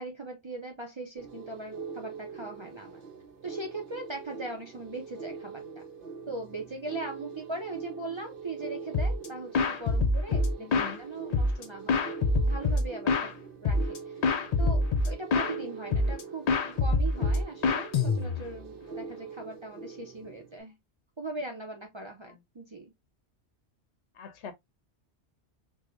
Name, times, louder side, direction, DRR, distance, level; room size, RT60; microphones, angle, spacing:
voice 1, 0.0-3.0 3.4-5.8 6.3-14.1 14.6-16.5 16.8-20.8 21.2-22.9, right 2 dB, 40° right, 0.4 m, -40 dB
sound 1, 1.2-20.6, right 5 dB, 55° right, 0.9 m, -43 dB
sound 2, 8.9-9.3 9.5-11.0 11.3-13.3 13.7-14.0 14.2-15.6 15.9-16.2 16.5-18.6, left 3 dB, 55° left, 0.4 m, -25 dB
voice 2, 10.6-11.0 22.3-22.4 24.1-24.5, left 7 dB, 85° left, 1.0 m, -44 dB
4.7 x 2.1 x 2.4 m
omnidirectional pair, 1.1 m